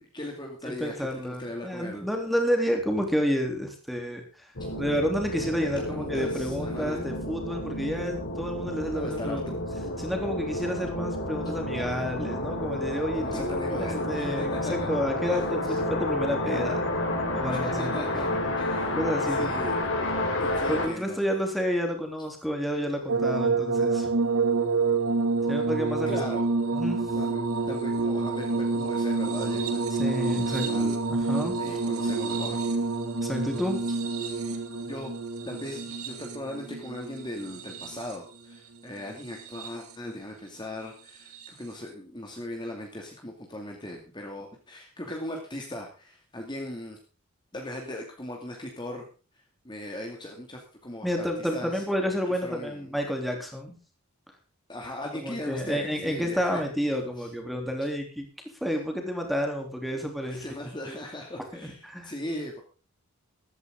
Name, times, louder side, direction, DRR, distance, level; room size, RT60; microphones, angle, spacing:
voice 1, 0.1-2.1 4.6-4.7 5.9-7.2 8.9-9.6 13.2-14.9 15.3-15.8 17.5-18.3 18.6-19.0 19.3-21.2 26.1-26.4 27.1-29.8 30.2-32.6 34.5-34.6 34.8-35.1 35.4-47.0 47.5-49.1 49.6-51.8 52.4-53.0 54.7-56.6 57.2-57.3 60.2-62.6, left 1 dB, 20° left, 1 dB, 2.4 m, -38 dB
voice 2, 0.6-4.5 4.8-9.6 10.0-15.6 15.9-16.8 17.3-18.0 18.4-18.5 19.0-19.5 20.7-24.1 25.5-26.2 26.7-27.1 29.9-30.8 31.1-31.6 33.2-33.8 51.0-53.8 55.2-58.3 58.6-60.4 61.6-62.1, equal, ahead, 2 dB, 3.3 m, -30 dB
sound 1, 4.6-20.9, left 1 dB, 60° left, 4.4 m, -30 dB
sound 2, 23.1-38.3 39.2-39.9 41.3-41.5, right 3 dB, 80° right, 2.3 m, -28 dB
14.5 x 13.0 x 3.8 m, 0.35 s
head